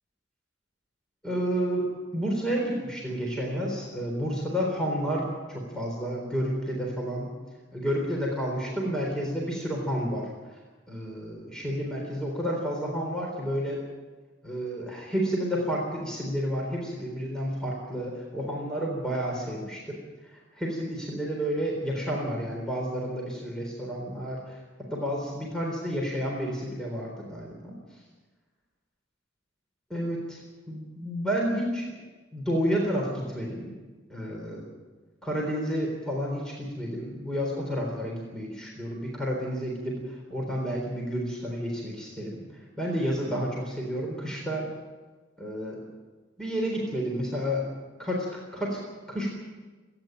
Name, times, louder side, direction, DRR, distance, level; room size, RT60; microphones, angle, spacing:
voice 1, 1.2-1.9 2.1-7.3 7.7-10.6 10.9-13.8 14.4-20.0 20.2-28.0 29.9-30.4 30.7-31.9 32.3-33.7 34.1-34.7 35.2-44.7 45.4-45.8 46.4-47.7 48.0-48.8 49.1-49.3, equal, 5° left, -2 dB, 3.8 m, -30 dB
29.0 x 10.0 x 9.1 m, 1.3 s
head